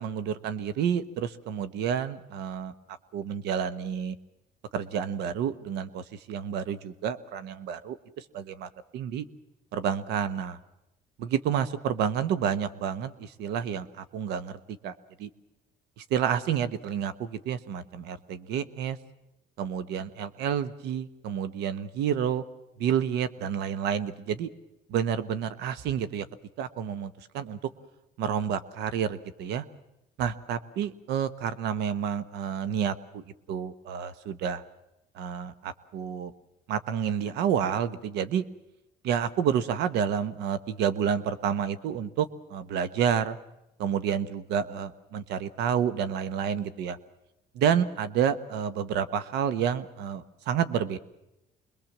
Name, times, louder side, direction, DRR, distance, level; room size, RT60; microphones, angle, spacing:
voice 1, 0.0-2.7 3.1-4.1 4.7-9.2 9.7-10.6 11.2-14.5 14.8-14.9 15.2-15.3 16.1-19.0 19.6-22.4 22.8-24.5 24.9-26.3 26.6-27.6 28.2-29.6 30.2-34.6 35.1-36.3 36.7-38.4 39.0-43.4 43.8-47.0 47.5-51.0, right 8 dB, 85° right, 14 dB, 1.3 m, -29 dB
26.0 x 21.5 x 7.4 m, 0.89 s
cardioid pair, 110°, 17 cm